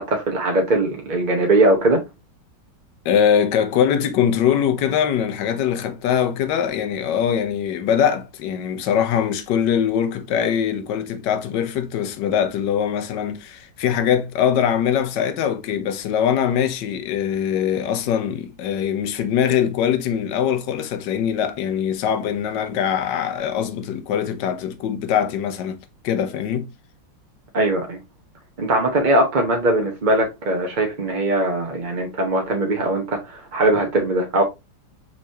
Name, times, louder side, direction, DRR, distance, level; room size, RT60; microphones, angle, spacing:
voice 1, 0.0-2.0 27.5-28.0 28.6-34.4, right 2 dB, 40° right, 0.7 m, -20 dB
voice 2, 3.0-25.8 26.0-26.7, left 8 dB, 75° left, 1.3 m, -22 dB
5.9 x 3.2 x 2.8 m
omnidirectional pair, 2.0 m